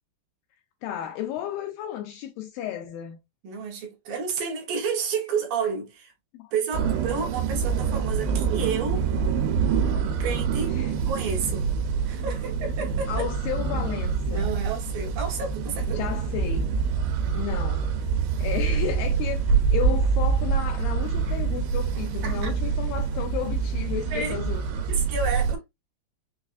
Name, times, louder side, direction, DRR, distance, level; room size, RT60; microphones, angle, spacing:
voice 1, 0.8-3.2 6.3-6.5 10.8-11.0 13.1-14.6 15.9-16.7 17.3-17.9 18.4-19.5 19.7-24.6, left 10 dB, 80° left, 2.1 m, -33 dB
voice 2, 3.4-6.1 6.5-9.0 10.2-10.8 11.1-11.7 12.1-13.3 14.3-16.1 21.3-21.4 22.2-22.5 24.1-24.4 24.9-25.6, right 5 dB, 70° right, 2.5 m, -30 dB
sound 1, 6.7-25.6, right 6 dB, 85° right, 2.8 m, -26 dB
6.2 x 2.4 x 2.4 m
omnidirectional pair, 4.5 m